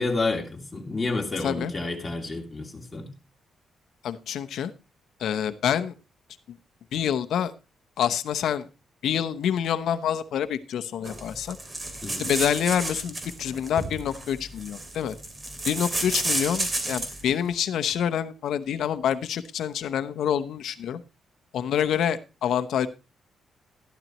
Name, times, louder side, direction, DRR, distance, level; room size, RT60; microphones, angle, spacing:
voice 1, 0.0-3.1 12.0-12.3, left 3 dB, 20° left, 1 dB, 2.8 m, -30 dB
voice 2, 1.4-1.7 4.0-4.7 5.2-5.9 6.9-7.5 8.0-8.7 9.0-11.6 12.2-15.2 15.7-21.0 21.5-22.9, left 9 dB, 80° left, 12 dB, 0.8 m, -27 dB
sound 1, 11.0-17.3, right 2 dB, 25° right, 2.6 m, -32 dB
12.5 x 12.0 x 3.0 m, 0.29 s
cardioid pair, 120°, 0 cm